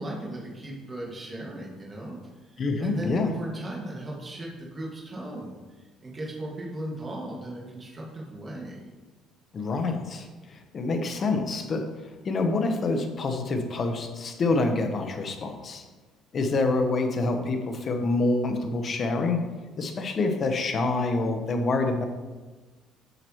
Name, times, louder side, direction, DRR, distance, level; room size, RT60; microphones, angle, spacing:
voice 1, 0.0-2.2 2.4-8.8, right 1 dB, 25° right, -4 dB, 1.9 m, -37 dB
voice 2, 2.6-3.3 9.5-15.8 16.3-19.4 19.8-22.0, left 3 dB, 40° left, 5 dB, 0.9 m, -27 dB
7.9 x 5.8 x 3.0 m, 1.3 s
cardioid pair, 115°, 0 cm